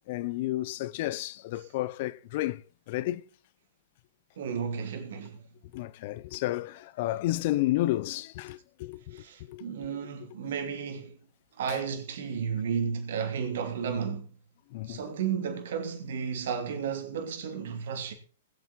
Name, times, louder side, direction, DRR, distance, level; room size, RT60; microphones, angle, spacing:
voice 1, 0.1-2.6 2.9-3.2 5.7-9.6 11.7-11.8 14.7-15.0, left 16 dB, 50° left, 0.7 m, -31 dB
voice 2, 4.4-5.4 9.1-11.2 11.6-14.3 14.9-18.1, right 6 dB, 65° right, 3.0 m, -33 dB
20.0 x 8.0 x 4.5 m
hypercardioid pair, 115°, 0 cm